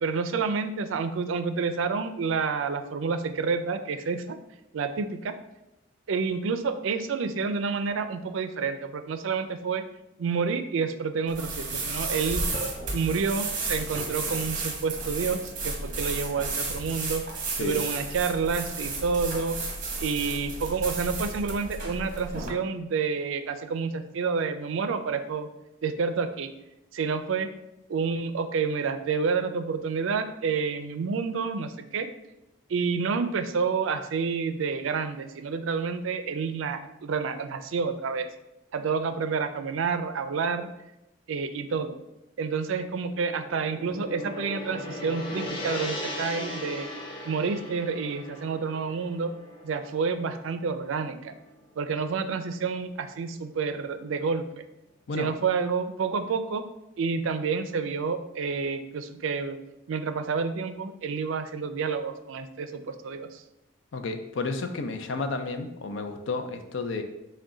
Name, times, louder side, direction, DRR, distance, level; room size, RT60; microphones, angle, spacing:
voice 1, 0.0-4.4 4.7-5.3 6.1-9.8 10.2-12.4 12.9-17.2 17.6-19.6 20.0-25.5 25.8-26.5 26.9-27.5 27.9-32.1 32.7-38.3 38.7-40.7 41.3-42.0 42.4-46.9 47.2-49.3 49.6-51.3 51.8-54.5 55.2-56.6 57.0-59.6 59.9-63.4, right 5 dB, 75° right, 9 dB, 0.4 m, -29 dB
sound 1, 11.3-22.5, right 3 dB, 40° right, 0.9 m, -33 dB
Gong, 43.1-51.4, left 1 dB, 25° left, 0.6 m, -38 dB
voice 2, 63.9-67.0, left 3 dB, 70° left, 7 dB, 0.5 m, -31 dB
6.0 x 2.2 x 3.8 m, 0.90 s
head